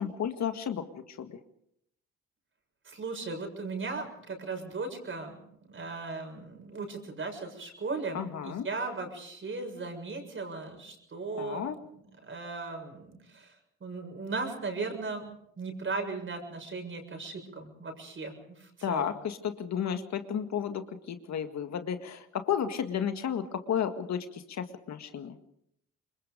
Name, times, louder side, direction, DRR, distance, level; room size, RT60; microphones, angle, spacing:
voice 1, 0.0-1.4 8.1-8.7 11.4-11.8 18.8-25.4, left 8 dB, 65° left, 8 dB, 1.9 m, -33 dB
voice 2, 2.8-5.4 5.7-11.7 11.9-13.6 13.8-19.1, right 3 dB, 40° right, 4 dB, 7.1 m, -37 dB
26.5 x 22.5 x 5.1 m, 0.74 s
cardioid pair, 90°, 30 cm